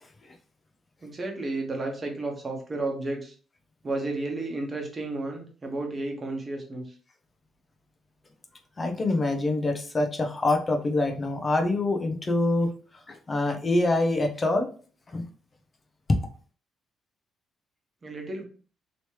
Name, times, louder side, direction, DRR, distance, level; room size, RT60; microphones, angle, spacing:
voice 1, 1.0-3.3 3.8-6.9 18.0-18.4, right 2 dB, 30° right, 2 dB, 1.1 m, -32 dB
voice 2, 8.8-12.7 13.1-14.7 15.1-15.2, left 2 dB, 30° left, 4 dB, 0.7 m, -25 dB
3.1 x 3.1 x 2.9 m, 0.40 s
cardioid pair, 90°, 0 cm